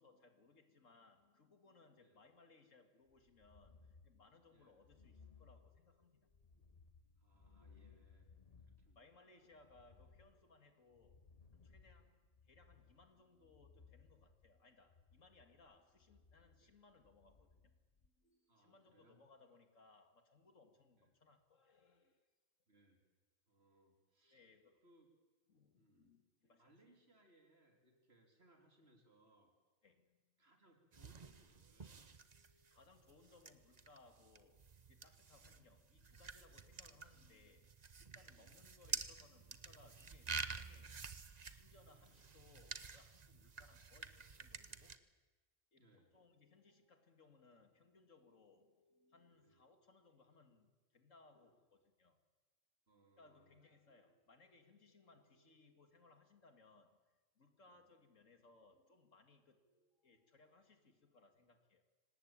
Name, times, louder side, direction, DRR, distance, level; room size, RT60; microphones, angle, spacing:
voice 1, 0.0-6.7 9.0-17.7 18.0-22.2 24.2-24.8 25.5-26.7 27.9-28.3 29.8-30.2 32.3-37.7 38.0-41.1 41.5-45.1 45.7-52.2 53.2-61.8, left 3 dB, 80° left, 2.5 m, -67 dB
sound 1, 3.1-18.1, left 5 dB, 30° left, 1.1 m, -65 dB
voice 2, 7.2-8.3 8.6-9.1 16.6-16.7 18.5-19.2 21.0-21.1 22.7-23.0 23.5-24.5 24.8-25.1 25.7-26.1 26.6-29.6 30.4-32.0 35.4-35.6 38.4-38.6 41.9-42.2 45.8-46.2 49.4-49.6 52.9-53.6 57.7-57.8, right 1 dB, 50° right, 3.8 m, -71 dB
sound 2, 30.9-45.0, right 5 dB, 35° right, 1.0 m, -49 dB
25.5 x 18.5 x 8.9 m
omnidirectional pair, 1.3 m